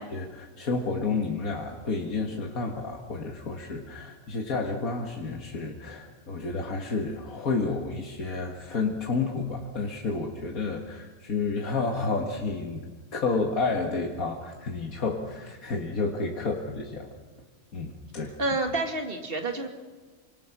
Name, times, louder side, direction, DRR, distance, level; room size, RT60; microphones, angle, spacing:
voice 1, 0.1-12.8 13.1-17.1 17.7-18.3, left 3 dB, 85° left, 1 dB, 2.3 m, -30 dB
voice 2, 18.4-19.7, right 2 dB, 40° right, 4 dB, 2.5 m, -28 dB
29.0 x 25.5 x 6.0 m, 1.4 s
omnidirectional pair, 1.4 m